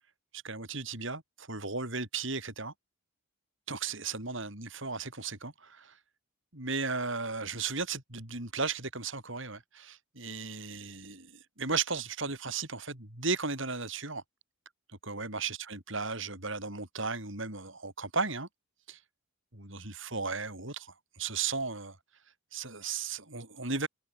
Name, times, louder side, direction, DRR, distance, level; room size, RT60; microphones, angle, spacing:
voice 1, 0.3-2.7 3.7-5.9 6.5-14.2 15.0-18.5 18.9-19.0 19.5-22.0 22.5-23.9, right 4 dB, 60° right, 6.3 m, -35 dB
head